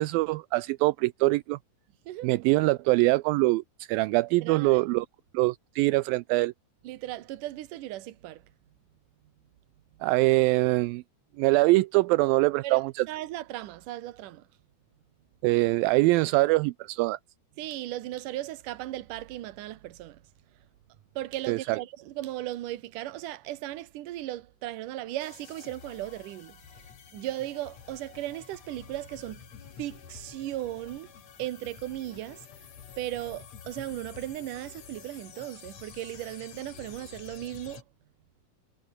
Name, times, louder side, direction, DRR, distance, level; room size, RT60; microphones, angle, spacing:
voice 1, 0.0-1.6 2.2-3.6 3.9-5.1 5.3-6.5 10.0-11.0 11.4-12.9 15.4-17.2 21.5-21.8, right 21 dB, 80° right, 2.1 m, -23 dB
voice 2, 4.4-4.8 6.8-8.4 12.6-14.5 17.6-20.2 21.2-29.5 29.8-31.1 31.4-32.5 33.0-37.8, right 14 dB, 65° right, 2.4 m, -37 dB
sound 1, 25.2-37.8, left 8 dB, 45° left, 2.9 m, -49 dB
omnidirectional pair, 4.6 m